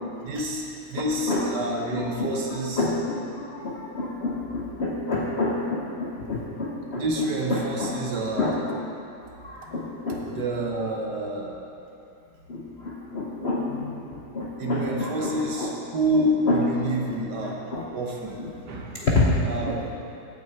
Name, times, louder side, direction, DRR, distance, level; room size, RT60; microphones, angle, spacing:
voice 1, 0.2-2.9 6.9-8.5 10.3-11.6 14.6-17.6 17.9-18.4 18.7-19.1 19.4-19.8, right 1 dB, 60° right, 0 dB, 1.4 m, -28 dB
voice 2, 1.9-8.0 8.4-8.8 9.4-10.5 12.5-15.7 16.5-16.6 17.1-17.2 17.4-17.9 18.4-18.5 19.0-19.9, left 2 dB, 60° left, -3 dB, 0.7 m, -28 dB
7.9 x 6.1 x 7.9 m, 2.7 s
omnidirectional pair, 2.3 m